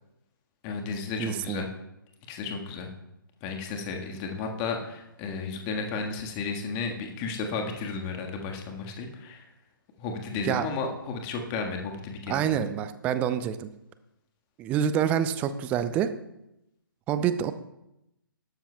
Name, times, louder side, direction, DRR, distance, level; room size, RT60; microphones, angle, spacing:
voice 1, 0.6-1.7 2.3-2.9 3.4-9.4 10.0-12.5, left 4 dB, 25° left, 3 dB, 1.5 m, -33 dB
voice 2, 1.2-1.6 10.4-10.7 12.3-13.7 14.6-16.1 17.1-17.5, right 9 dB, 10° right, 12 dB, 0.4 m, -27 dB
17.0 x 12.5 x 2.2 m, 0.87 s
figure-of-eight pair, 135°, 12 cm